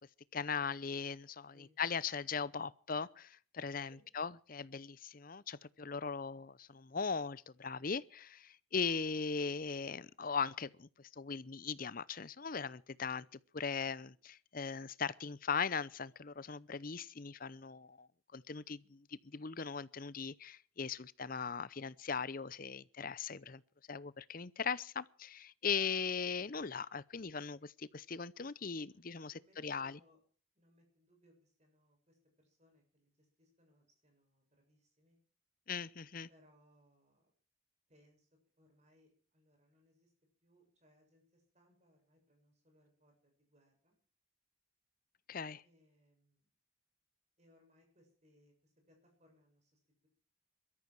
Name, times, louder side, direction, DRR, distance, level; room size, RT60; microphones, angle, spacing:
voice 1, 0.3-10.9 11.2-13.3 13.5-18.1 18.3-19.0 19.3-23.6 23.9-30.0 35.7-36.3 45.3-45.6, left 5 dB, 45° left, 0.7 m, -39 dB
voice 2, 28.9-30.2 30.5-35.2 36.3-37.3 37.9-38.3 38.6-40.1 40.4-44.0 45.6-46.5 47.4-50.1, equal, 35° right, 7.3 m, -70 dB
22.0 x 13.5 x 4.7 m
head